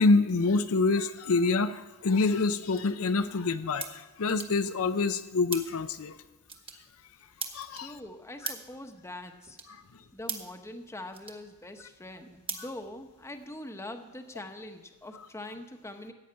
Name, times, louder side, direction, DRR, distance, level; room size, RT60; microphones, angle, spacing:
voice 1, 0.0-6.2 7.5-7.9 8.4-8.5, left 3 dB, 70° left, 10 dB, 0.6 m, -26 dB
sound 1, 2.0-13.5, right 5 dB, 25° right, 1.5 m, -44 dB
voice 2, 7.7-9.6 10.1-16.1, left 1 dB, 10° left, 6 dB, 1.0 m, -43 dB
14.5 x 9.2 x 5.7 m, 1.1 s
head